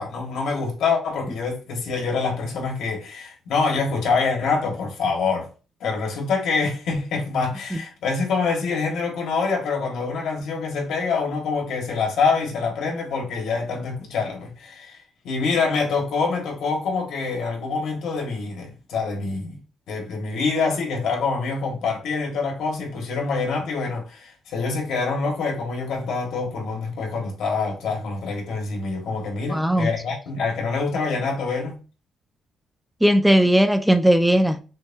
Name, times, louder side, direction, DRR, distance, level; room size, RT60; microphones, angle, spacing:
voice 1, 0.0-5.5 5.8-19.6 19.9-31.8, left 4 dB, 80° left, 1.5 m, -25 dB
voice 2, 29.5-29.9 33.0-34.6, equal, 5° right, 0.3 m, -18 dB
6.2 x 2.2 x 2.7 m
cardioid pair, 145°, 0 cm